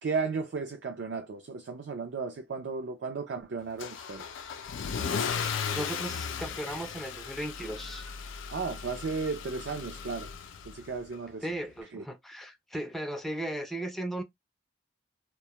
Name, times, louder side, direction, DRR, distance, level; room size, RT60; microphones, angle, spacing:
voice 1, 0.0-4.3 8.5-10.3 10.7-11.5 11.9-12.0, right 4 dB, 65° right, 0.4 m, -34 dB
Car / Engine starting / Accelerating revving vroom, 3.8-10.9, left 6 dB, 85° left, 0.4 m, -36 dB
voice 2, 5.5-8.1 11.4-14.2, right 1 dB, ahead, 0.3 m, -36 dB
2.2 x 2.1 x 2.8 m
head